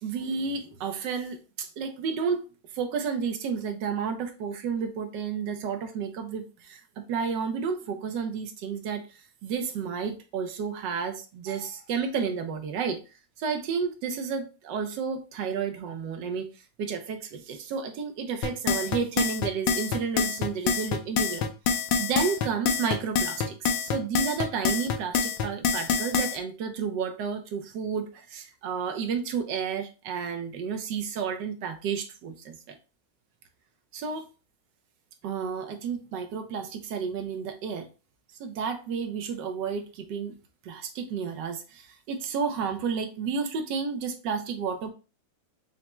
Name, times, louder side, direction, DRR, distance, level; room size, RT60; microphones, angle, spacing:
voice 1, 0.0-2.4 2.7-9.0 9.4-13.0 13.4-16.5 16.8-21.5 21.8-32.8 33.9-34.2 35.2-37.9 38.4-40.3 40.6-44.9, right 6 dB, 70° right, 1.0 m, -31 dB
sound 1, 18.4-26.4, left 6 dB, 75° left, 1.4 m, -26 dB
5.7 x 2.1 x 2.9 m
omnidirectional pair, 2.4 m